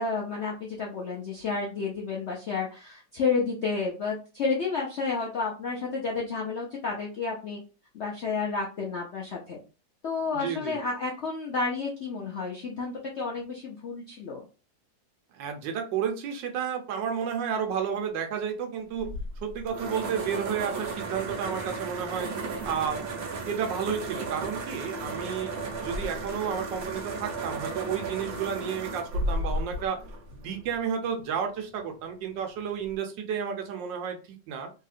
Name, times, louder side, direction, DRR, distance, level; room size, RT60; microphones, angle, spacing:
voice 1, 0.0-7.6 7.9-9.6 10.0-14.4, left 4 dB, 70° left, -2 dB, 0.6 m, -31 dB
voice 2, 10.3-10.8 15.3-19.1 19.4-22.3 22.7-25.5 25.8-30.0 30.3-34.7, right 7 dB, 80° right, 4 dB, 1.4 m, -32 dB
sound 1, 19.0-30.8, right 2 dB, 65° right, 1.0 m, -34 dB
3.2 x 2.8 x 2.4 m, 0.33 s
omnidirectional pair, 2.0 m